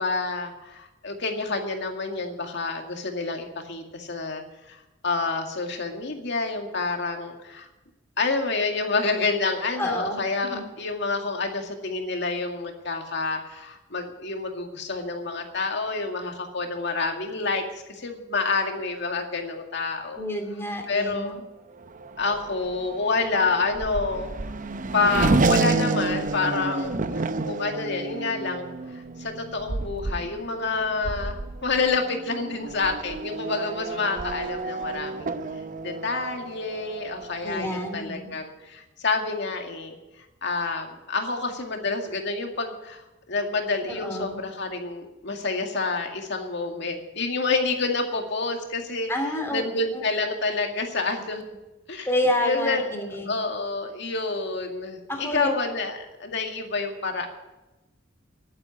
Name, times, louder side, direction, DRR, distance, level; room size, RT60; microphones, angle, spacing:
voice 1, 0.0-4.4 4.7-7.7 8.2-20.2 20.9-21.4 22.2-24.4 24.9-35.3 35.8-40.0 40.4-49.1 49.5-51.4 51.9-52.1 52.4-52.9 53.3-57.3, left 3 dB, 65° left, 3 dB, 2.1 m, -28 dB
voice 2, 9.8-10.6 20.2-21.4 37.4-38.3 43.9-44.4 49.1-49.7 49.9-50.0 52.1-53.4 55.1-55.5, left 1 dB, 15° left, 3 dB, 2.6 m, -29 dB
Race car auto racing / Accelerating revving vroom, 21.8-38.0, right 3 dB, 45° right, 0.7 m, -30 dB
11.0 x 9.5 x 9.8 m, 1.0 s
head